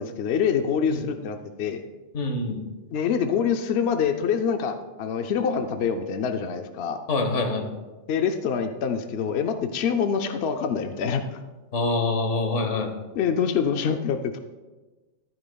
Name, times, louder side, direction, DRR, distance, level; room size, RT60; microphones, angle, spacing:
voice 1, 0.0-1.8 2.9-7.0 8.1-11.2 13.2-14.4, left 7 dB, 65° left, 6 dB, 0.8 m, -25 dB
voice 2, 2.1-2.6 7.1-7.7 11.7-12.9, left 2 dB, 85° left, 5 dB, 1.6 m, -25 dB
13.5 x 11.0 x 2.3 m, 1.2 s
omnidirectional pair, 1.2 m